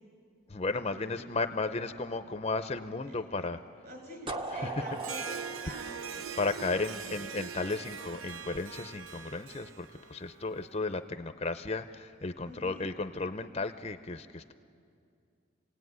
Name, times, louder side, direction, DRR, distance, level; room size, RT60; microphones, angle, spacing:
voice 1, 0.5-3.6 4.5-4.7 6.4-14.5, left 3 dB, 30° left, 9 dB, 0.6 m, -34 dB
voice 2, 3.0-3.5 3.8-5.3 5.6-6.3 6.7-7.2 12.4-12.9, equal, 45° right, 2 dB, 6.4 m, -47 dB
sound 1, 4.3-7.1, right 3 dB, 25° right, 0.8 m, -39 dB
Harp, 4.9-10.7, right 6 dB, 80° right, 0.7 m, -42 dB
28.0 x 18.0 x 9.5 m, 2.5 s
head